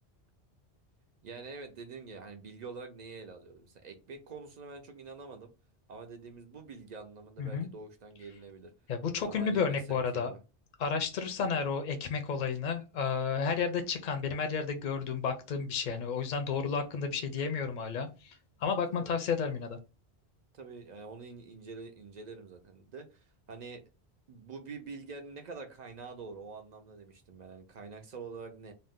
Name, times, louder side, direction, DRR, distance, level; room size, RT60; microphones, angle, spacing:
voice 1, 1.2-5.5 5.9-8.7 9.2-10.4 19.0-19.1 20.5-23.8 24.3-28.7, right 4 dB, 55° right, 0.5 m, -46 dB
voice 2, 8.9-10.3 10.8-18.3 18.6-19.8, left 5 dB, 55° left, 0.6 m, -32 dB
2.5 x 2.1 x 3.5 m
omnidirectional pair, 1.1 m